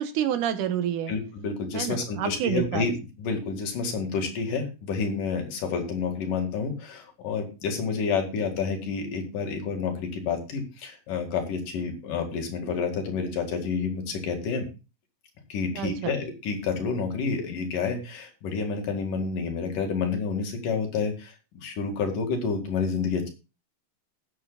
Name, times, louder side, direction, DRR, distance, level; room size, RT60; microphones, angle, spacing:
voice 1, 0.0-1.1 1.7-2.8 15.7-16.1, right 10 dB, 80° right, 9 dB, 2.6 m, -28 dB
voice 2, 1.1-2.9 3.2-14.7 15.5-21.3 21.6-23.3, left 5 dB, 90° left, 3 dB, 3.8 m, -29 dB
19.0 x 7.7 x 2.4 m, 0.30 s
omnidirectional pair, 3.6 m